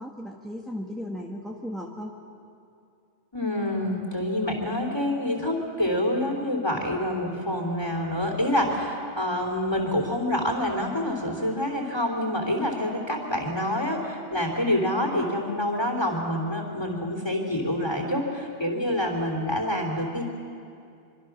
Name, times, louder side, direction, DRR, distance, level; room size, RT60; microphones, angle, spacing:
voice 1, 0.0-2.2, left 1 dB, ahead, -1 dB, 1.4 m, -36 dB
voice 2, 3.3-20.2, left 1 dB, 25° left, 2 dB, 3.4 m, -27 dB
25.5 x 25.0 x 6.2 m, 2.5 s
omnidirectional pair, 1.1 m